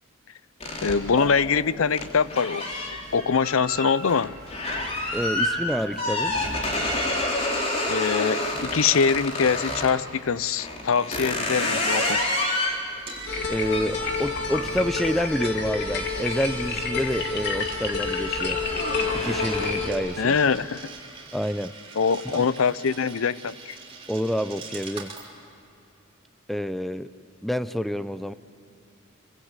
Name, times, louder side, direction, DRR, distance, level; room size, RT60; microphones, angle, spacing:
sound 1, 0.6-10.0 10.6-17.0 17.4-17.8 18.1-20.0, left 1 dB, 30° left, 3.4 m, -29 dB
voice 1, 0.8-2.7 3.1-4.3 7.9-12.3 20.2-20.9 22.0-23.8, left 5 dB, 85° left, 18 dB, 0.6 m, -23 dB
voice 2, 5.1-6.4 13.5-18.6 19.1-20.4 21.3-21.7 22.3-22.5 24.1-25.1 26.5-27.1 27.4-28.3, equal, ahead, 13 dB, 0.6 m, -28 dB
Coin (dropping), 12.5-25.3, right 4 dB, 25° right, 4.1 m, -44 dB
sound 2, 13.3-19.9, left 4 dB, 55° left, 2.8 m, -28 dB
28.0 x 25.0 x 8.2 m, 2.8 s
head